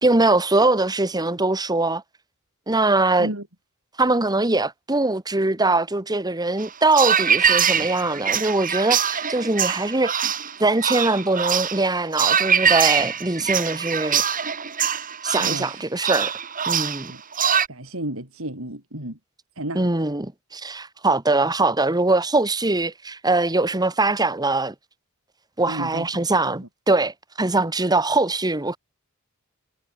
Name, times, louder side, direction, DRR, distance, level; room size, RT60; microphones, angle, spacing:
voice 1, 0.0-2.0 2.7-3.3 4.0-10.1 10.6-14.2 15.2-16.3 16.7-17.1 19.8-24.7 25.6-28.8, right 2 dB, 20° right, 1.8 m, -22 dB
sound 1, 6.6-17.7, right 7 dB, 40° right, 7.7 m, -23 dB
voice 2, 15.4-15.9 17.1-17.2 17.7-19.2 19.6-19.8 25.7-26.1 26.5-26.7, right 1 dB, 65° right, 7.4 m, -32 dB
head